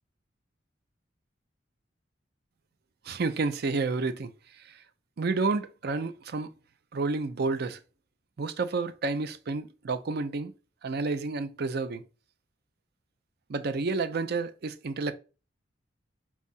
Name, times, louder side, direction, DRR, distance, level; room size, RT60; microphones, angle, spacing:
voice 1, 3.1-4.3 4.7-4.8 5.2-6.5 6.9-7.8 8.4-10.5 10.8-12.0 13.5-15.1, right 3 dB, 60° right, 0.5 m, -30 dB
4.5 x 2.4 x 4.1 m
head